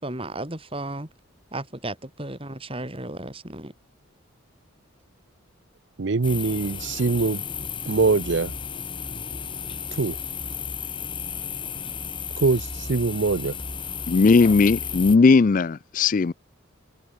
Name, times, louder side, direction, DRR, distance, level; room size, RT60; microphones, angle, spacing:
voice 1, 0.0-1.1 1.5-3.7, right 2 dB, 25° right, 3.1 m, -34 dB
voice 2, 6.0-7.4 7.9-8.5 9.9-10.2 12.4-13.6, right 4 dB, 55° right, 0.6 m, -23 dB
sound 1, 6.2-15.2, left 6 dB, 25° left, 2.3 m, -33 dB
voice 3, 14.1-16.3, left 4 dB, 40° left, 0.4 m, -17 dB
head